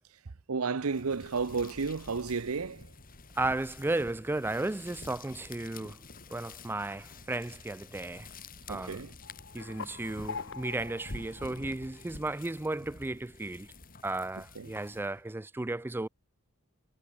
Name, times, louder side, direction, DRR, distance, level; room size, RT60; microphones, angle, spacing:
voice 1, 0.5-2.9 8.7-9.1 14.6-14.7, right 4 dB, 75° right, 0.8 m, -32 dB
sound 1, 0.8-15.3, left 3 dB, 40° left, 3.4 m, -49 dB
voice 2, 3.4-6.0 6.3-8.3 8.7-9.0 9.5-13.7 14.0-16.1, right 2 dB, 10° right, 0.4 m, -34 dB
sound 2, 9.2-12.5, left 5 dB, 60° left, 1.5 m, -44 dB
head